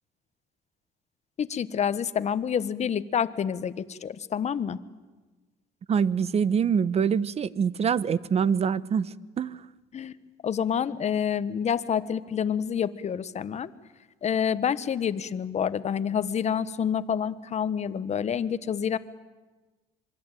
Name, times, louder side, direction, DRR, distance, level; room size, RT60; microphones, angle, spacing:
voice 1, 1.4-4.8 9.9-10.1 10.4-13.7 14.2-19.0, left 8 dB, 40° left, 1.3 m, -28 dB
voice 2, 5.9-9.7, right 7 dB, 40° right, 0.9 m, -25 dB
27.0 x 23.0 x 9.1 m
cardioid pair, 110°, 17 cm